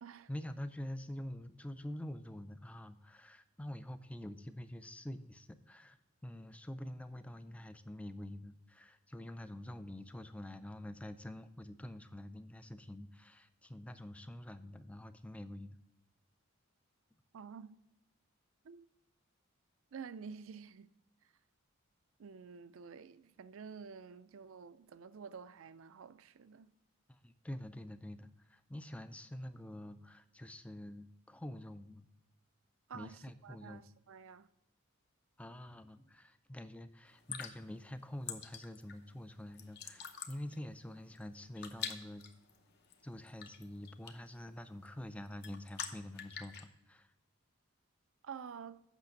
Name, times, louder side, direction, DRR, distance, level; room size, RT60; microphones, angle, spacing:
voice 1, 0.3-6.0 6.2-15.8 27.1-32.0 32.9-33.8 35.4-42.2 43.0-47.1, left 1 dB, 5° left, 0.3 m, -46 dB
voice 2, 17.3-17.8 18.6-18.9 19.9-20.9 22.2-26.7 32.9-34.5 48.2-48.8, right 6 dB, 65° right, 0.4 m, -50 dB
sound 1, 37.1-46.7, left 7 dB, 45° left, 0.8 m, -48 dB
8.3 x 5.9 x 5.1 m
head